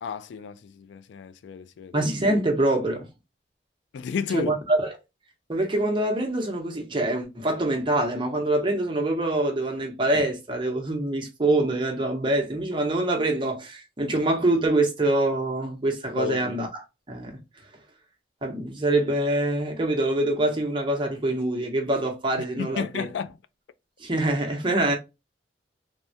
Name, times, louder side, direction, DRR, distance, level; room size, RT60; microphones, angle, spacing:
voice 1, 0.0-1.9 3.9-4.5 16.2-16.6 22.6-23.4, left 6 dB, 80° left, 0.3 m, -32 dB
voice 2, 1.9-3.1 4.3-4.9 5.5-16.8 17.1-17.4 18.4-23.1 24.0-24.9, right 2 dB, 25° right, 0.7 m, -25 dB
3.4 x 2.1 x 2.6 m
head